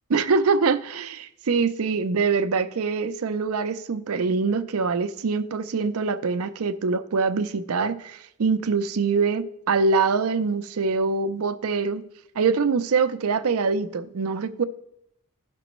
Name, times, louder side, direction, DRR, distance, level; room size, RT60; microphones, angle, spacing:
voice 1, 0.1-12.0 12.4-14.6, right 4 dB, 80° right, 0.5 m, -24 dB
15.0 x 6.0 x 3.1 m
head